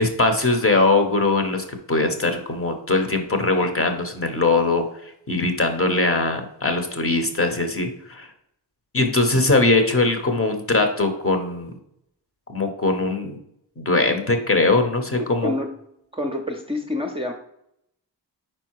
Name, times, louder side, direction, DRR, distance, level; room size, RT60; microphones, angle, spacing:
voice 1, 0.0-4.9 5.3-8.3 8.9-11.7 12.5-13.4 13.8-15.5, left 2 dB, 30° left, 6 dB, 0.8 m, -21 dB
voice 2, 16.1-17.3, left 1 dB, 15° right, 2 dB, 0.5 m, -27 dB
5.1 x 4.5 x 4.6 m, 0.77 s
wide cardioid pair, 145°, 44 cm